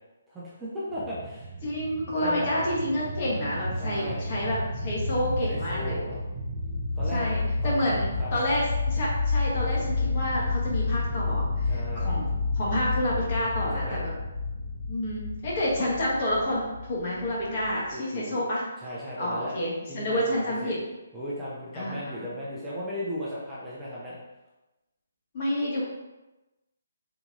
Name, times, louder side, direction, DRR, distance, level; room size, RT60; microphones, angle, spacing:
voice 1, 0.3-1.5 2.2-2.5 3.8-4.2 5.4-6.2 7.0-7.3 7.6-8.3 11.7-12.1 13.7-14.0 17.9-18.4 18.8-19.6 19.9-20.8 21.1-24.2, equal, 10° right, -9 dB, 0.7 m, -36 dB
sound 1, 0.9-17.9, left 3 dB, 45° right, 0.9 m, -30 dB
voice 2, 1.6-6.0 7.1-12.3 12.5-14.1 14.9-18.6 19.2-20.8 21.7-21.9 25.3-25.8, left 1 dB, 40° left, -5 dB, 1.2 m, -29 dB
3.8 x 2.7 x 2.5 m, 1.0 s
figure-of-eight pair, 140°, 0 cm